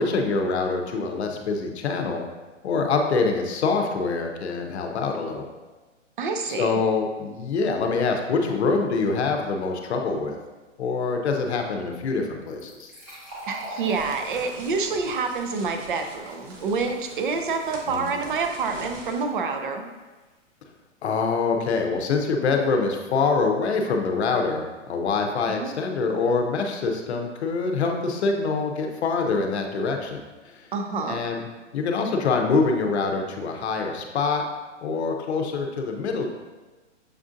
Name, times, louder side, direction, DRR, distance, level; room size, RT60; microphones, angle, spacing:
voice 1, 0.0-2.2 2.6-5.5 6.4-10.4 10.8-12.9 17.9-18.2 21.0-30.7 31.1-31.4 31.7-34.4 34.8-36.3, left 4 dB, 60° left, 3 dB, 0.7 m, -25 dB
voice 2, 6.2-6.8 13.4-19.9 25.6-25.7 30.7-31.2, right 4 dB, 45° right, 5 dB, 0.5 m, -27 dB
Fill (with liquid), 12.5-19.8, equal, 15° right, 0.7 m, -44 dB
sound 1, 13.9-19.2, right 2 dB, 85° right, 0.9 m, -44 dB
6.5 x 2.5 x 2.5 m, 1.2 s
hypercardioid pair, 160°, 37 cm